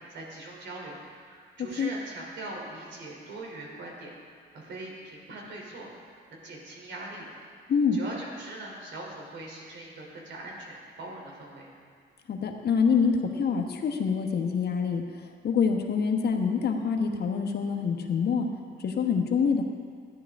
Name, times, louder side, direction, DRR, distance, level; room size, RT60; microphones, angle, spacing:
voice 1, 0.0-11.7, right 2 dB, 65° right, -2 dB, 3.1 m, -42 dB
voice 2, 12.3-18.5 18.8-19.6, left 6 dB, 55° left, 4 dB, 1.1 m, -26 dB
14.0 x 10.5 x 3.6 m, 2.1 s
cardioid pair, 90°, 20 cm